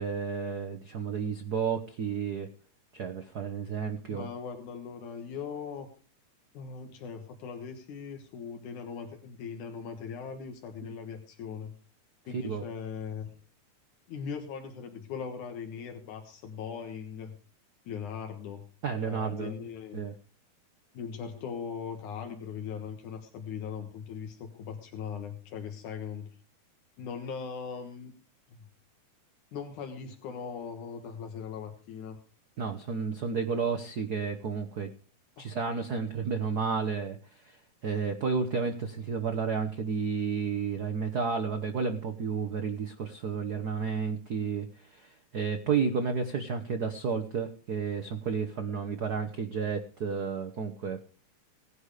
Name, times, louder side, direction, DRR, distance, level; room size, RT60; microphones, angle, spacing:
voice 1, 0.0-2.5 2.9-4.3 10.8-10.9 12.3-12.6 18.8-19.5 19.9-20.1 32.6-34.9 35.4-37.6 37.8-51.0, right 5 dB, 80° right, 6 dB, 0.8 m, -31 dB
voice 2, 4.1-5.9 6.5-11.7 12.3-13.3 14.1-17.4 17.9-18.6 19.0-20.0 20.9-26.3 27.0-28.1 28.5-28.6 29.5-32.2 35.4-35.5, left 6 dB, 85° left, 5 dB, 2.9 m, -39 dB
18.0 x 10.5 x 5.0 m, 0.39 s
omnidirectional pair, 3.4 m